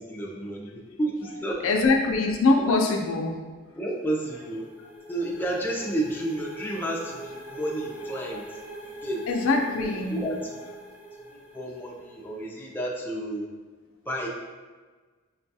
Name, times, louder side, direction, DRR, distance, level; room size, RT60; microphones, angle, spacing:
voice 1, 0.0-1.8 2.6-2.7 3.7-4.7 5.1-9.3 9.8-10.7 11.3-13.5 14.0-14.3, right 1 dB, 10° left, -2 dB, 0.5 m, -31 dB
voice 2, 1.6-3.4 9.3-10.2, left 3 dB, 85° left, 2 dB, 0.5 m, -23 dB
sound 1, 3.8-12.5, right 1 dB, 10° right, 0.8 m, -43 dB
5.4 x 2.3 x 2.7 m, 1.4 s
head